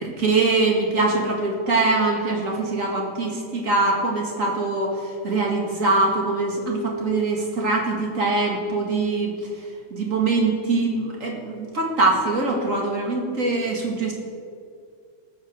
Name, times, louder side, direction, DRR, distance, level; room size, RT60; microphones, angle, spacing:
voice 1, 0.0-14.1, right 3 dB, 40° right, 0 dB, 2.3 m, -23 dB
19.0 x 6.6 x 6.5 m, 2.3 s
omnidirectional pair, 2.2 m